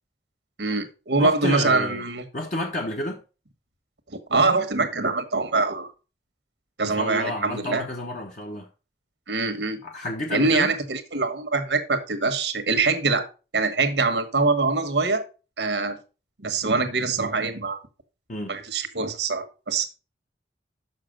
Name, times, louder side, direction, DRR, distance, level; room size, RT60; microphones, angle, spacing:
voice 1, 0.6-2.2 4.3-5.9 6.8-7.8 9.3-9.8 10.3-13.3 13.5-15.2 15.6-16.0 16.4-17.8 18.5-19.9, right 3 dB, 80° right, 1.3 m, -24 dB
voice 2, 1.2-2.0 2.3-3.2 6.8-8.7 9.8-10.7 18.3-18.5, left 1 dB, 45° left, 1.1 m, -30 dB
6.6 x 6.0 x 5.0 m
head